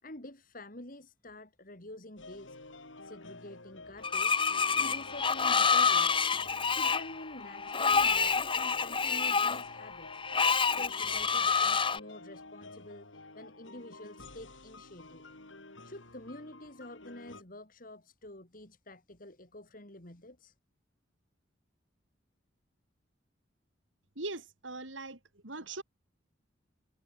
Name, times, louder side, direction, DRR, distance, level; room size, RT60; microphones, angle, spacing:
voice 1, 0.0-2.6 3.0-4.4 4.7-6.2 6.7-10.2 10.7-15.2 15.8-20.5, left 1 dB, 45° left, 4.0 m, -48 dB
sound 1, 2.2-17.4, left 2 dB, 85° left, 6.8 m, -50 dB
Screech, 4.0-12.0, left 5 dB, 25° left, 1.6 m, -28 dB
voice 2, 24.2-25.8, right 2 dB, 90° right, 5.3 m, -41 dB
head